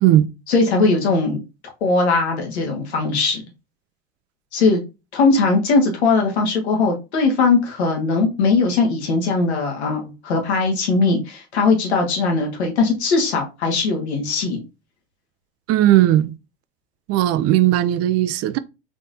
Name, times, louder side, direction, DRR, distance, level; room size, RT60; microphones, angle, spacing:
voice 1, 0.5-1.4 1.8-3.4 4.5-4.8 5.1-14.6, left 3 dB, 85° left, 1.7 m, -19 dB
voice 2, 15.7-16.3 17.1-18.6, right 13 dB, 50° right, 0.5 m, -16 dB
4.0 x 3.5 x 2.6 m
hypercardioid pair, 85°, 32 cm